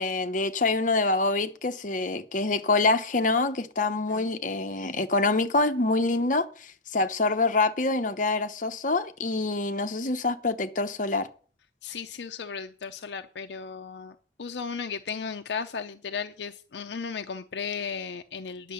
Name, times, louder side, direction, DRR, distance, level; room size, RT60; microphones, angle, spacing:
voice 1, 0.0-11.3, left 3 dB, 45° left, 0.9 m, -26 dB
voice 2, 11.8-18.7, left 6 dB, 75° left, 0.6 m, -35 dB
10.0 x 6.6 x 7.0 m
head